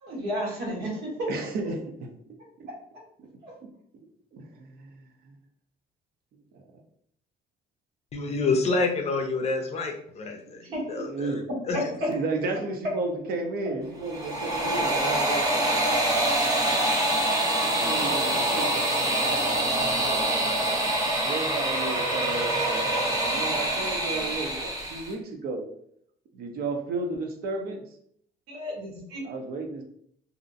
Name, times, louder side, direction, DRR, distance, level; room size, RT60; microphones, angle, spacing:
voice 1, 0.0-1.3 3.4-3.5 10.7-10.8 11.7-11.8 28.5-29.2, equal, 80° right, -3 dB, 1.1 m, -32 dB
voice 2, 1.3-2.1 2.6-2.7 4.3-5.4 6.5-6.6 10.7-11.5 11.9-15.9 16.7-16.8 17.8-19.0 21.2-25.6 26.3-27.8 29.2-29.8, right 3 dB, 65° right, 3 dB, 0.6 m, -33 dB
voice 3, 8.1-10.6 10.9-11.3 11.7-11.8, left 3 dB, 40° left, 4 dB, 0.5 m, -27 dB
sound 1, 14.0-25.1, right 1 dB, 20° right, 0.8 m, -25 dB
2.5 x 2.0 x 2.6 m, 0.68 s
cardioid pair, 110°, 17 cm